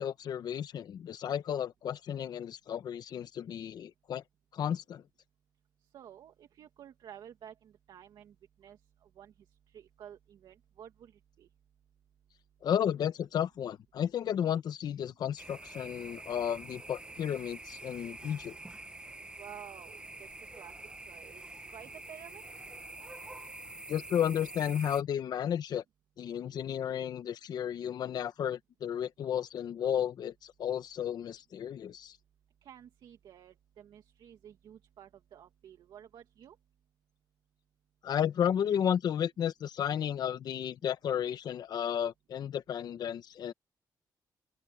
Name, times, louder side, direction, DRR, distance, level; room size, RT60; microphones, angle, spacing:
voice 1, 0.0-4.2 4.5-5.0 12.6-18.6 23.9-25.8 26.2-32.2 38.0-43.5, left 9 dB, 65° left, 1.1 m, -33 dB
voice 2, 5.9-9.3 9.7-11.5 19.4-20.7 21.1-21.4 21.7-22.4 32.6-36.6, right 9 dB, 80° right, 2.2 m, -52 dB
sound 1, 15.4-25.0, right 2 dB, 15° right, 1.2 m, -46 dB
open air
wide cardioid pair, 145°, 7 cm